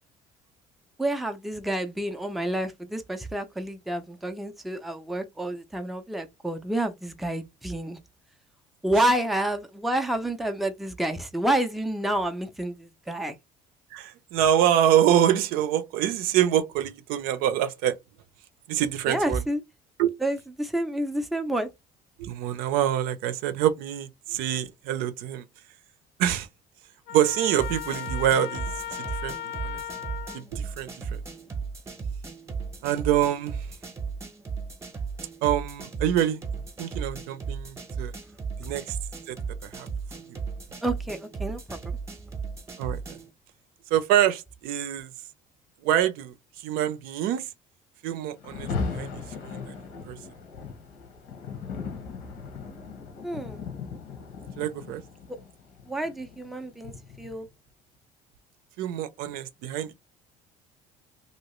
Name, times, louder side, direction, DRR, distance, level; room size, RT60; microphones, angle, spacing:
voice 1, 1.0-8.0 8.8-13.4 19.1-19.6 20.2-21.7 40.8-42.0 53.2-53.6 55.3-55.4 55.9-57.5, right 1 dB, ahead, 0.4 m, -29 dB
voice 2, 13.9-18.0 18.7-19.4 20.0-20.1 22.2-25.5 26.2-26.5 27.1-28.7 29.0-29.8 30.3-31.2 32.8-33.7 35.4-36.4 36.8-38.1 38.6-39.0 39.3-39.4 39.6-39.9 40.3-40.4 42.8-43.2 43.9-45.1 45.8-47.5 48.0-50.2 54.6-55.0 58.8-59.9, right 11 dB, 80° right, 0.6 m, -26 dB
Trumpet, 27.1-30.4, left 11 dB, 60° left, 0.5 m, -36 dB
sound 1, 27.6-43.3, right 5 dB, 20° right, 0.8 m, -36 dB
Rain, 48.4-57.5, left 5 dB, 80° left, 1.0 m, -37 dB
3.0 x 2.7 x 3.0 m
cardioid pair, 150°, 15 cm